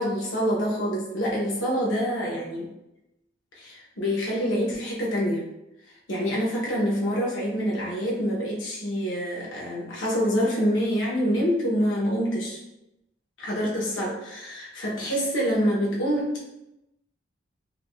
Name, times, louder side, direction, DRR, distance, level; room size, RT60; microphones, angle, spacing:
voice 1, 0.0-2.7 3.6-5.5 6.1-12.6 13.4-16.5, equal, 85° left, -4 dB, 1.0 m, -26 dB
4.7 x 2.2 x 2.4 m, 0.90 s
head